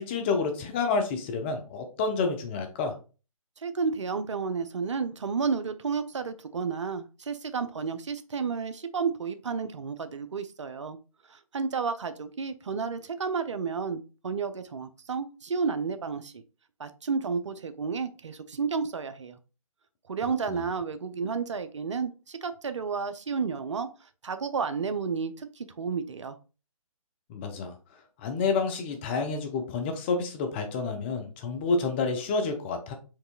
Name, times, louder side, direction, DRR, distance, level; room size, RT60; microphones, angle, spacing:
voice 1, 0.0-2.9 20.5-20.6 27.3-27.7 28.2-32.9, left 4 dB, 20° left, 5 dB, 0.5 m, -29 dB
voice 2, 3.6-11.0 11.3-16.4 16.8-19.4 20.1-26.4, right 5 dB, 55° right, 11 dB, 0.5 m, -31 dB
4.6 x 3.8 x 2.3 m, 0.33 s
figure-of-eight pair, 135°, 18 cm